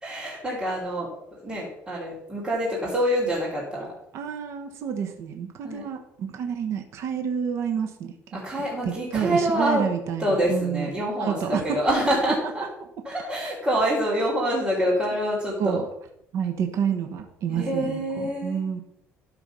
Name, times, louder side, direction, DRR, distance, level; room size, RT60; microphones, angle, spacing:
voice 1, 0.0-3.9 5.6-5.8 8.3-9.9 10.2-12.7 13.0-15.8 17.5-18.6, equal, 15° right, -8 dB, 3.1 m, -26 dB
voice 2, 4.1-8.1 8.8-10.9 11.2-11.8 12.3-12.4 15.6-15.8 16.3-18.8, right 7 dB, 60° right, 5 dB, 1.2 m, -29 dB
12.5 x 4.5 x 5.6 m, 0.76 s
cardioid pair, 150°, 5 cm